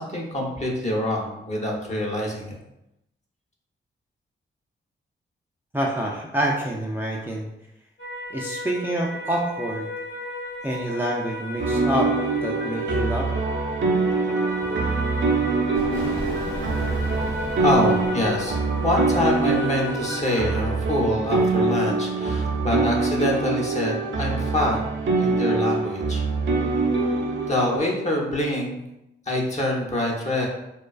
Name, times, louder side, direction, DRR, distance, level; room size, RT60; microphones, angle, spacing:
voice 1, 0.0-2.6 17.6-18.6 18.8-24.8 25.2-26.2 26.6-26.7 27.5-28.8 29.3-30.5, left 1 dB, 35° left, -2 dB, 0.8 m, -25 dB
voice 2, 5.7-7.5 8.3-9.9 10.6-12.1 12.4-13.3, right 1 dB, 10° right, -3 dB, 0.4 m, -27 dB
sound 1, 8.0-20.7, left 1 dB, 60° left, 0.9 m, -35 dB
sound 2, 11.6-27.8, right 3 dB, 65° right, 0.5 m, -24 dB
sound 3, 15.7-20.4, left 1 dB, 85° left, 0.6 m, -36 dB
2.3 x 2.3 x 2.3 m, 0.86 s
cardioid pair, 50°, 21 cm